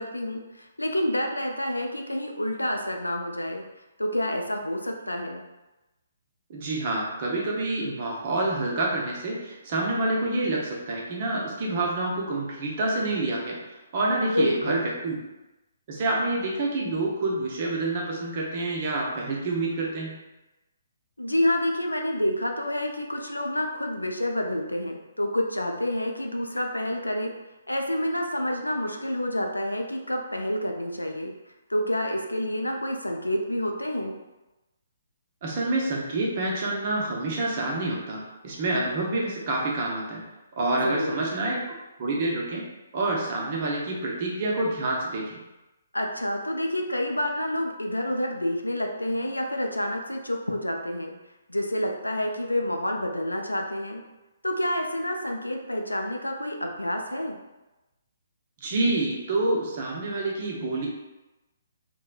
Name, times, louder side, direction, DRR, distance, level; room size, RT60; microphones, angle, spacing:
voice 1, 0.0-3.6 4.0-5.4 14.2-14.9 21.2-27.3 27.7-31.3 31.7-34.2 40.8-41.2 45.9-51.1 51.5-54.0 54.4-57.4, left 1 dB, 85° left, 2 dB, 0.4 m, -28 dB
voice 2, 6.5-13.6 13.9-15.2 15.9-20.1 35.4-40.2 40.5-41.6 42.0-42.6 42.9-45.4 58.6-60.9, right 2 dB, 40° right, -2 dB, 0.6 m, -27 dB
3.0 x 2.1 x 2.4 m, 1.0 s
figure-of-eight pair, 130°, 0 cm